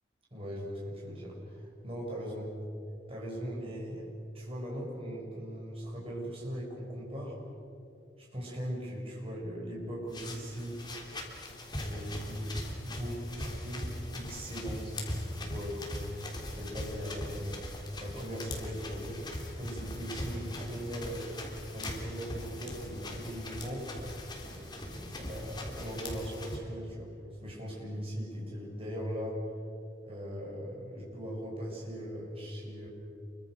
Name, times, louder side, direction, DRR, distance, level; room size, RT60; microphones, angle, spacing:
voice 1, 0.3-2.5 3.1-4.1 4.3-7.4 8.2-10.8 11.8-12.5 12.8-13.9 14.1-15.0 15.3-16.2 16.5-17.6 18.0-19.2 19.6-21.3 21.7-23.9 24.5-27.1 27.4-29.4 30.0-32.9, equal, 35° right, -4 dB, 7.9 m, -39 dB
sound 1, 10.1-26.6, left 1 dB, 25° left, 3.6 m, -40 dB
29.5 x 24.0 x 6.6 m, 2.6 s
head